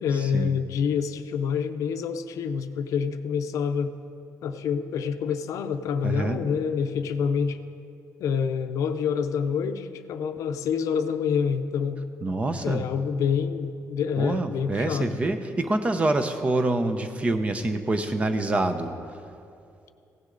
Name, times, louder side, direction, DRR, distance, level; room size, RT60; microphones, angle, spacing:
voice 1, 0.0-3.9 4.4-7.6 8.2-12.0 12.6-15.2, left 6 dB, 70° left, 9 dB, 0.5 m, -27 dB
voice 2, 6.0-6.4 12.2-12.9 14.2-18.9, right 2 dB, 25° right, 8 dB, 0.6 m, -26 dB
16.5 x 9.6 x 3.9 m, 2.5 s
cardioid pair, 160°, 6 cm